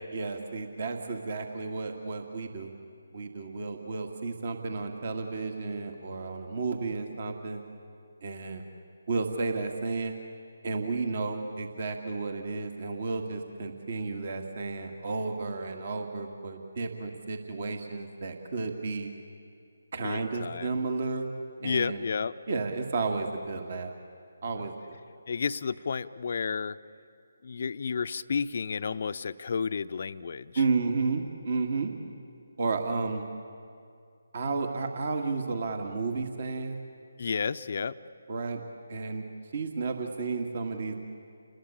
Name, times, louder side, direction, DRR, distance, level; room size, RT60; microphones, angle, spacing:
voice 1, 0.1-2.7 3.1-7.6 8.2-8.6 9.1-10.2 10.6-19.1 19.9-21.3 21.6-22.0 22.5-23.9 24.4-25.0 30.6-31.9 32.6-33.2 34.3-36.8 38.3-38.6 38.9-39.2 39.5-41.0, right 4 dB, 50° right, 5 dB, 2.0 m, -32 dB
voice 2, 20.0-20.8 21.6-22.3 25.3-26.8 27.4-30.5 37.2-37.9, left 5 dB, 50° left, 12 dB, 0.7 m, -31 dB
29.5 x 20.5 x 8.7 m, 2.3 s
figure-of-eight pair, 150°, 0 cm